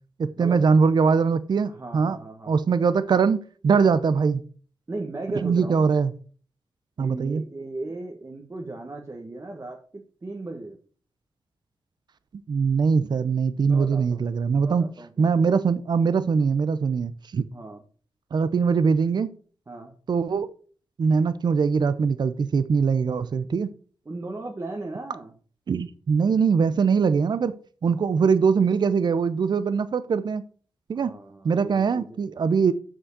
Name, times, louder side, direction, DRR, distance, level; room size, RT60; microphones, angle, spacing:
voice 1, 0.2-2.2 2.5-4.4 5.3-6.1 7.0-7.4 12.5-14.9 15.2-17.5 18.3-19.3 20.1-20.5 21.0-23.7 25.7-27.5 27.8-30.4 30.9-31.1 31.4-32.7, right 5 dB, 55° right, 13 dB, 0.7 m, -22 dB
voice 2, 1.7-2.6 4.9-5.8 7.0-10.8 13.5-15.5 16.3-16.5 17.5-17.8 19.7-19.9 24.0-25.3 30.9-32.2, right 2 dB, 30° right, 1 dB, 1.4 m, -37 dB
7.2 x 6.3 x 6.5 m, 0.43 s
wide cardioid pair, 95°, 9 cm